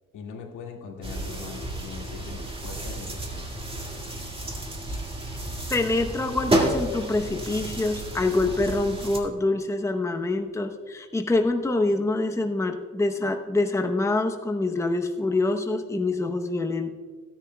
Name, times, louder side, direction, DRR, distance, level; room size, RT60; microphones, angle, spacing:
voice 1, 0.1-3.6, left 5 dB, 75° left, 1 dB, 2.0 m, -41 dB
sound 1, 1.0-9.2, right 1 dB, 20° right, 1.8 m, -31 dB
voice 2, 5.7-16.9, left 2 dB, 10° left, 6 dB, 0.7 m, -26 dB
15.5 x 10.0 x 2.2 m, 1.5 s
cardioid pair, 90°, 30 cm